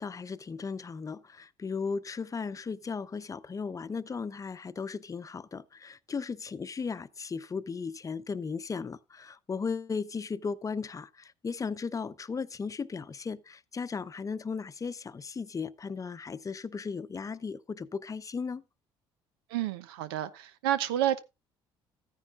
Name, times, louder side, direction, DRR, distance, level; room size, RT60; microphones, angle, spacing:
voice 1, 0.0-18.6, left 5 dB, 30° left, 0.7 m, -36 dB
voice 2, 19.5-21.2, right 12 dB, 85° right, 0.8 m, -29 dB
14.0 x 9.7 x 2.5 m
hypercardioid pair, 65°, 12 cm